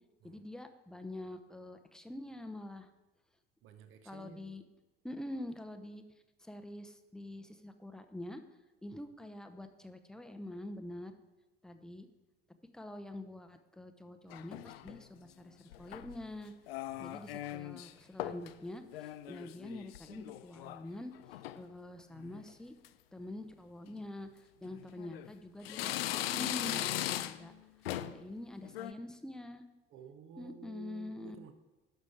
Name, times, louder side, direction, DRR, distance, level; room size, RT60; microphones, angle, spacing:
voice 1, 0.2-2.9 4.0-4.6 5.0-6.0 6.4-8.4 8.8-11.2 11.6-12.1 12.7-16.5 17.0-21.1 21.5-22.7 23.1-27.5 28.0-29.6 30.4-31.4, left 1 dB, ahead, 8 dB, 0.7 m, -45 dB
voice 2, 3.6-4.5 16.9-17.7 29.9-31.5, right 7 dB, 40° right, 10 dB, 0.9 m, -53 dB
sound 1, 14.3-15.0 15.7-16.2 16.7-17.9 18.2-18.5 18.9-20.8 21.1-21.6 22.2-22.5 22.8-22.9 23.9-24.0 24.7-25.3 25.6-27.5 27.9-28.2 28.6-28.9, left 13 dB, 70° left, 0.5 m, -39 dB
11.0 x 6.4 x 4.8 m, 1.1 s
figure-of-eight pair, 60°, 32 cm